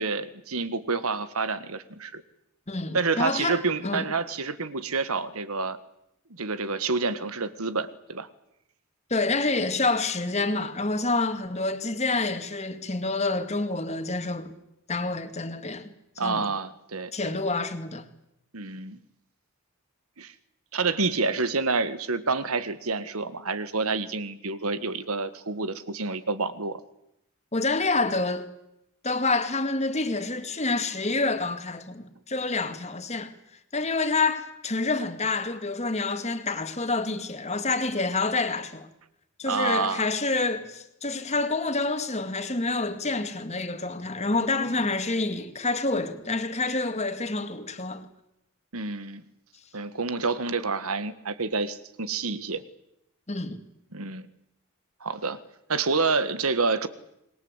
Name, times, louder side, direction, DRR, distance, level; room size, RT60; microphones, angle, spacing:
voice 1, 0.0-2.2 2.9-5.8 6.3-8.3 16.2-17.3 18.5-19.0 20.2-20.3 20.7-26.8 39.5-40.1 48.7-49.2 49.7-52.6 53.9-54.3 55.0-55.4 55.7-56.9, right 4 dB, 80° right, 1.6 m, -28 dB
voice 2, 2.7-4.0 9.1-14.5 14.9-15.9 16.2-16.5 17.1-18.0 27.5-28.5 29.0-33.3 33.7-38.9 39.4-48.1 53.3-53.6, left 3 dB, 30° left, 2.1 m, -28 dB
26.5 x 21.5 x 8.1 m
head